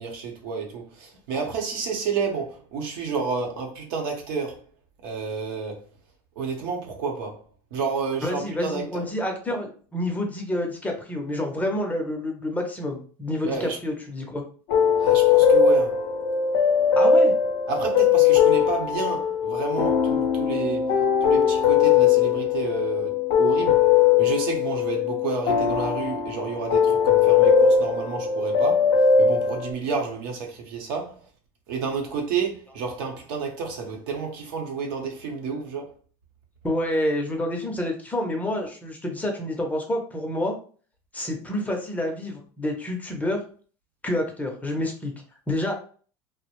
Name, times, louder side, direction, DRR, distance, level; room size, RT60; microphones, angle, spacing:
voice 1, 0.0-4.6 5.0-5.8 6.4-7.4 7.7-9.0 13.4-13.8 15.0-15.9 17.7-23.8 24.2-31.2 31.7-35.9, right 5 dB, 75° right, 0.8 m, -30 dB
voice 2, 8.2-14.4 17.0-17.3 36.6-40.5 41.1-43.4 44.0-45.1 45.5-45.7, left 1 dB, 10° left, 0.5 m, -28 dB
sound 1, 14.7-29.7, left 6 dB, 70° left, 0.5 m, -20 dB
2.3 x 2.0 x 2.9 m
supercardioid pair, 120°, 13 cm